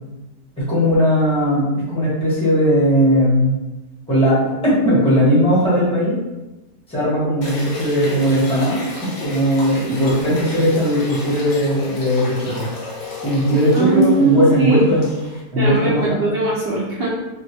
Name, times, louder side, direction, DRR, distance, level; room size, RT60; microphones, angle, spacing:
voice 1, 0.6-3.6 4.1-6.2 6.9-12.7 13.2-15.1 15.5-16.2, equal, 5° left, -9 dB, 1.0 m, -18 dB
sound 1, 7.4-15.4, left 2 dB, 90° left, 0.4 m, -33 dB
voice 2, 13.7-14.8 15.6-17.1, right 3 dB, 55° right, -5 dB, 0.6 m, -19 dB
3.0 x 2.7 x 2.7 m, 1.0 s
omnidirectional pair, 1.8 m